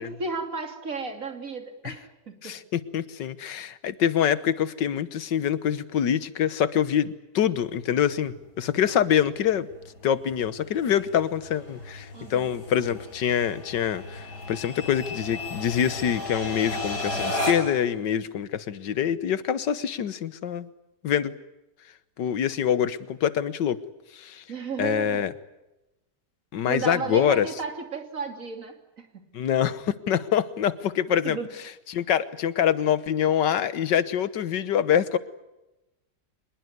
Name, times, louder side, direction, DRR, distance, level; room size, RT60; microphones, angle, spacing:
voice 1, 0.0-2.6 12.1-12.5 24.5-25.2 26.7-29.2 31.2-31.5, right 4 dB, 50° right, 6 dB, 3.1 m, -34 dB
voice 2, 2.4-9.7 10.0-20.7 21.0-21.3 22.2-23.8 24.1-24.4 24.8-25.3 26.5-27.5 29.3-31.4 31.9-35.2, left 9 dB, 85° left, 15 dB, 1.8 m, -25 dB
sound 1, 7.6-17.9, left 1 dB, 65° left, 6.9 m, -35 dB
25.0 x 21.0 x 9.4 m, 0.98 s
omnidirectional pair, 1.9 m